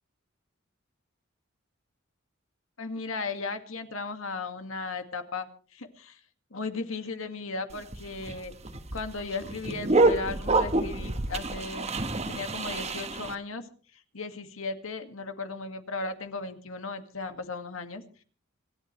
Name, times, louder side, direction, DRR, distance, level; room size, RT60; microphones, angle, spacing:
voice 1, 2.8-6.2 6.5-8.5 8.9-11.9 12.3-13.7 13.9-18.0, left 3 dB, 85° left, 7 dB, 2.0 m, -36 dB
sound 1, 7.7-13.3, right 2 dB, 30° right, 1.3 m, -27 dB
27.0 x 13.0 x 3.3 m, 0.41 s
head